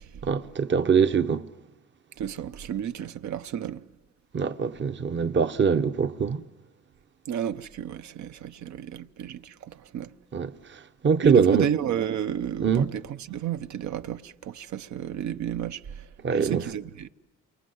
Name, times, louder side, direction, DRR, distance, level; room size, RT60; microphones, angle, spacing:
voice 1, 0.2-1.4 4.3-6.4 10.3-10.5 11.0-11.6 12.6-12.9 16.2-16.6, right 6 dB, 40° right, 0.9 m, -23 dB
voice 2, 2.2-3.8 7.3-10.1 11.2-17.1, right 9 dB, 70° right, 1.0 m, -31 dB
28.5 x 24.5 x 7.9 m
cardioid pair, 90°, 30 cm